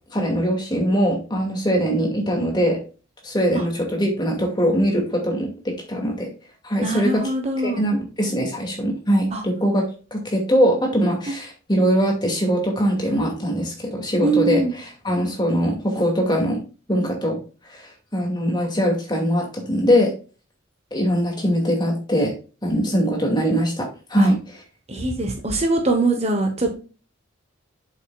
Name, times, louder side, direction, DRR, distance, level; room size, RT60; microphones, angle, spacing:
voice 1, 0.1-2.8 3.2-6.3 6.6-7.2 7.6-16.6 16.9-17.4 17.7-20.1 20.9-22.3 22.6-24.6, equal, 20° left, 0 dB, 2.3 m, -22 dB
voice 2, 6.8-7.9 9.3-9.4 11.3-11.4 14.2-14.7 24.2-24.3 24.9-26.7, right 2 dB, 30° right, 4 dB, 1.1 m, -22 dB
8.3 x 6.8 x 2.4 m, 0.34 s
head